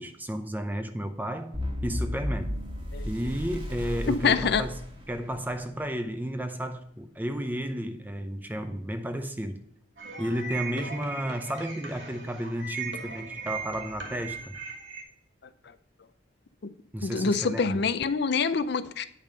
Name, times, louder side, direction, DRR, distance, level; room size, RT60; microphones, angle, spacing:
voice 1, 0.0-1.6 1.8-2.6 3.0-4.8 5.1-9.6 10.2-14.6 16.9-17.9, equal, 10° right, 0.5 m, -32 dB
sound 1, 1.5-5.7, left 1 dB, 25° right, 1.5 m, -34 dB
voice 2, 4.1-4.6 16.6-16.7 17.0-19.1, left 5 dB, 55° left, 0.5 m, -26 dB
sound 2, 10.0-15.0, right 4 dB, 65° right, 1.5 m, -38 dB
9.1 x 5.3 x 5.3 m
head